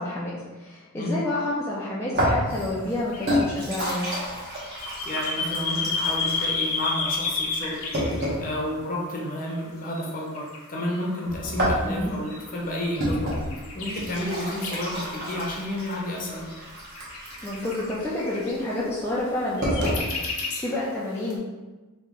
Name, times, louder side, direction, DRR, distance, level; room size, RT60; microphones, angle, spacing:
voice 1, 0.0-4.1 11.8-12.1 17.4-21.4, left 1 dB, 10° left, -7 dB, 0.4 m, -29 dB
sound 1, 2.1-8.5 11.3-20.0, equal, 45° right, 1.1 m, -30 dB
sound 2, 3.1-9.1 9.9-10.0 10.3-15.0 16.0-18.6 19.6-20.9 21.3-21.4, left 4 dB, 70° left, 0.7 m, -32 dB
voice 2, 5.0-13.3 13.7-16.5, left 1 dB, 40° left, -2 dB, 0.7 m, -31 dB
3.1 x 2.8 x 3.5 m, 1.2 s
head